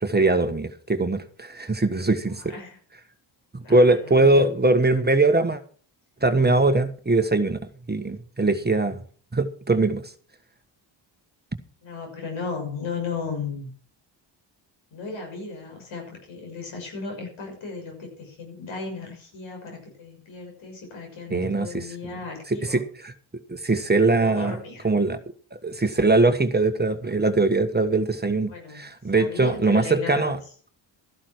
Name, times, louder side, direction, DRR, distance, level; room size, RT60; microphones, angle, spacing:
voice 1, 0.0-2.5 3.5-5.6 6.2-7.6 7.9-9.0 9.3-10.1 21.3-21.9 22.5-23.1 23.5-24.6 24.8-25.2 25.5-30.4, right 2 dB, 20° right, 8 dB, 1.5 m, -21 dB
voice 2, 2.1-2.8 3.6-4.5 11.8-13.7 14.9-22.8 24.2-24.9 28.5-28.8 29.1-30.4, left 4 dB, 90° left, 3 dB, 6.6 m, -35 dB
13.5 x 11.5 x 4.7 m, 0.42 s
cardioid pair, 75°, 46 cm